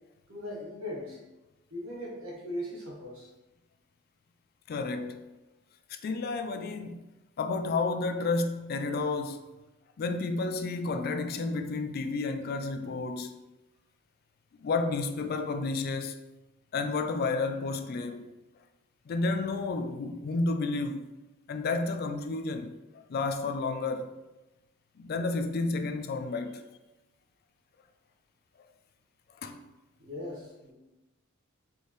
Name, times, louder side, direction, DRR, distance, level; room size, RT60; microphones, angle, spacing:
voice 1, 0.3-1.2 1.7-3.3 30.0-30.7, left 1 dB, 70° right, 1.3 m, -39 dB
voice 2, 4.7-5.2 5.9-7.0 7.4-9.4 10.0-13.4 14.6-16.2 16.7-18.3 19.1-21.0 21.5-22.7 23.1-24.2 25.0-26.6 29.4-29.6, left 3 dB, 45° left, 0.3 m, -31 dB
4.5 x 3.4 x 3.1 m
head